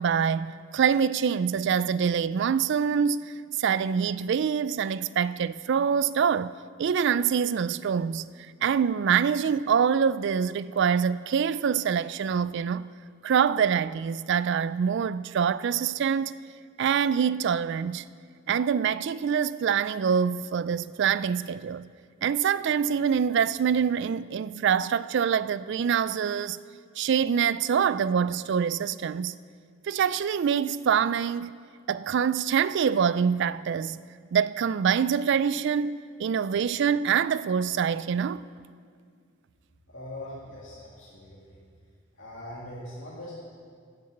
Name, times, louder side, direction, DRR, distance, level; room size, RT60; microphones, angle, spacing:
voice 1, 0.0-6.5 6.8-8.3 8.6-12.9 13.2-16.3 16.8-18.0 18.5-21.9 22.2-26.6 27.0-29.4 29.8-31.6 31.9-34.0 34.3-38.5, right 7 dB, 55° right, 0.3 m, -25 dB
voice 2, 39.9-41.6 42.2-43.4, left 1 dB, 60° left, 2.4 m, -41 dB
14.5 x 6.8 x 7.8 m
head